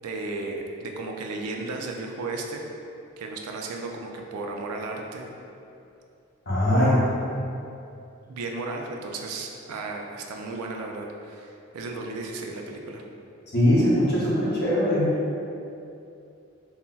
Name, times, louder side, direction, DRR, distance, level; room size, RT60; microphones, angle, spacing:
voice 1, 0.0-2.6 3.2-5.3 6.7-7.2 8.3-13.0, right 3 dB, 90° right, 1 dB, 0.3 m, -34 dB
voice 2, 6.5-7.0 7.3-7.4 13.5-15.1, left 1 dB, 45° left, -8 dB, 0.8 m, -21 dB
3.8 x 2.0 x 2.2 m, 2.6 s
head